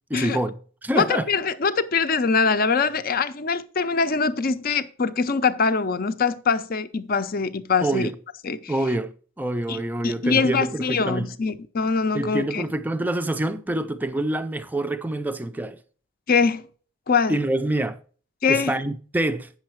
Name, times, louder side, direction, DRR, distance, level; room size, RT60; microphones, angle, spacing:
voice 1, 0.1-1.3 7.8-8.2 8.7-11.4 12.1-15.8 17.3-18.0 18.5-19.5, right 1 dB, 10° right, 0.4 m, -26 dB
voice 2, 0.9-8.1 8.4-8.7 9.7-12.6 16.3-16.6 17.1-17.4 18.4-18.7, left 5 dB, 45° left, 0.6 m, -23 dB
8.7 x 6.5 x 4.5 m
head